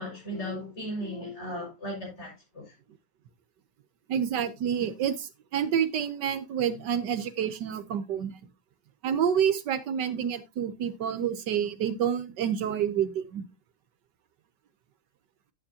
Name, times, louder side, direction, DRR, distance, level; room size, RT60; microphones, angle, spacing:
voice 1, 0.0-2.7, equal, 35° left, 6.1 m, -36 dB
voice 2, 4.1-8.3 9.0-13.4, right 8 dB, 75° right, 1.5 m, -28 dB
11.5 x 9.1 x 2.8 m
omnidirectional pair, 1.9 m